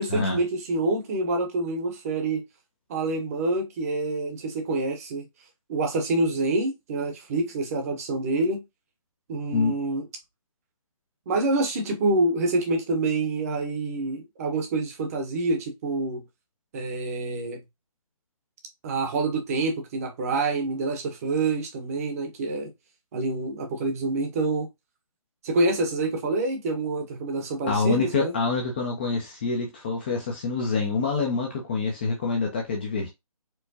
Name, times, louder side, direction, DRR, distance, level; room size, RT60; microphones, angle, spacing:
voice 1, 0.0-2.4 2.9-5.2 5.7-8.6 9.3-10.0 11.3-16.2 16.7-17.6 18.8-22.7 23.1-24.7 25.4-28.3, right 2 dB, 25° right, 0.8 m, -27 dB
voice 2, 27.7-33.1, left 4 dB, 15° left, 0.4 m, -26 dB
4.5 x 2.1 x 2.6 m
figure-of-eight pair, 155°, 19 cm